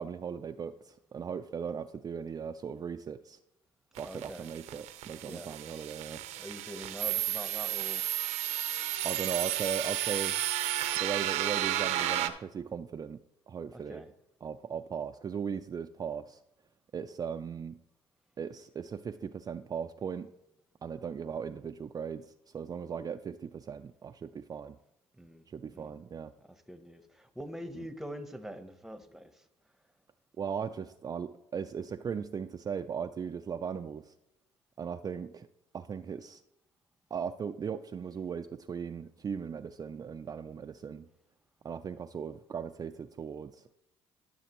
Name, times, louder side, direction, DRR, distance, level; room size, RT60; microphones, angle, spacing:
voice 1, 0.0-3.4 4.0-6.2 9.0-10.4 11.0-13.2 13.5-14.0 14.4-16.4 16.9-17.8 18.4-20.3 20.8-24.8 25.5-26.3 27.8-27.9 30.4-34.1 34.8-35.5 35.7-36.4 37.1-41.1 41.6-43.7, right 7 dB, 35° right, 7 dB, 0.4 m, -38 dB
voice 2, 4.0-4.5 5.2-5.5 6.3-8.0 13.7-14.1 25.2-25.4 25.7-25.9 26.5-29.4, equal, 5° right, 9 dB, 0.9 m, -44 dB
sound 1, 4.0-12.3, right 12 dB, 85° right, 0.7 m, -32 dB
13.0 x 6.7 x 3.0 m, 0.85 s
supercardioid pair, 80°, 11 cm